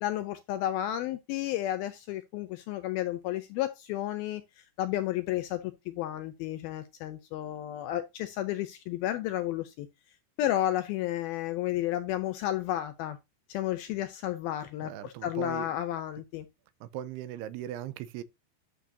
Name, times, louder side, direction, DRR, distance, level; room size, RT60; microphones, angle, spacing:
voice 1, 0.0-5.6 5.9-9.9 10.4-13.2 13.5-16.5, left 13 dB, 85° left, 2.2 m, -32 dB
voice 2, 14.8-15.7 16.8-18.2, right 11 dB, 80° right, 2.6 m, -38 dB
11.5 x 6.8 x 2.8 m
omnidirectional pair, 4.9 m